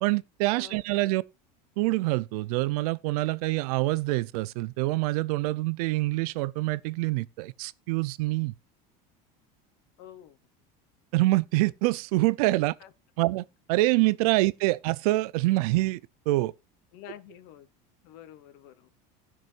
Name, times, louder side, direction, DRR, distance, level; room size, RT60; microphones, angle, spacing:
voice 1, 0.0-1.2 1.8-8.5 11.1-12.8 13.2-16.0 16.3-16.5, right 20 dB, 75° right, 0.6 m, -26 dB
voice 2, 0.5-1.0 10.0-10.4 12.8-12.9 16.9-17.7 18.0-18.9, left 11 dB, 60° left, 1.1 m, -48 dB
18.5 x 6.2 x 2.5 m
cardioid pair, 165°, 19 cm